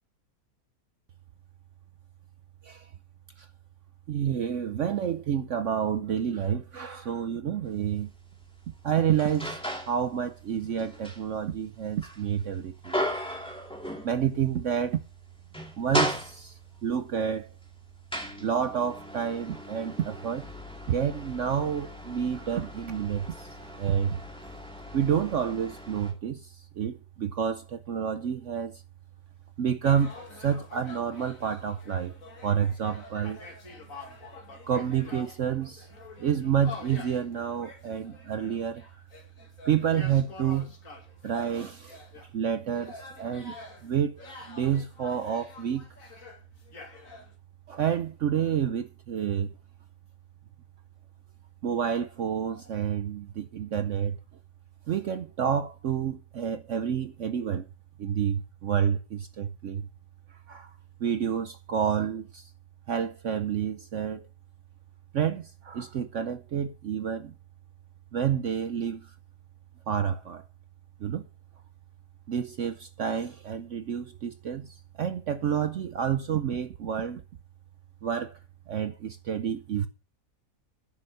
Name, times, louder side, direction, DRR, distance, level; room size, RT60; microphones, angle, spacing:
voice 1, 4.1-8.1 8.8-9.6 9.9-13.0 14.0-15.0 15.8-17.5 18.4-20.5 20.9-24.2 24.9-28.8 29.6-32.2 32.4-33.4 34.7-35.9 36.2-39.0 39.7-40.7 41.2-42.0 42.3-43.5 43.8-44.1 44.5-45.8 47.7-49.5 51.6-54.2 54.9-57.7 58.0-59.9 60.3-60.7 61.0-62.5 62.9-64.3 65.1-67.3 68.1-69.1 69.9-70.4 71.0-71.3 72.3-77.2 78.0-78.4 78.7-79.9, right 8 dB, 60° right, 0.9 m, -29 dB
sound 1, 7.7-7.9 8.4-10.0 10.4-14.5 14.8-15.0 15.4-16.8 17.5-26.1, equal, 5° left, 2.2 m, -36 dB
sound 2, 29.8-47.3, left 3 dB, 55° left, 2.6 m, -47 dB
9.9 x 6.9 x 6.6 m
omnidirectional pair, 1.8 m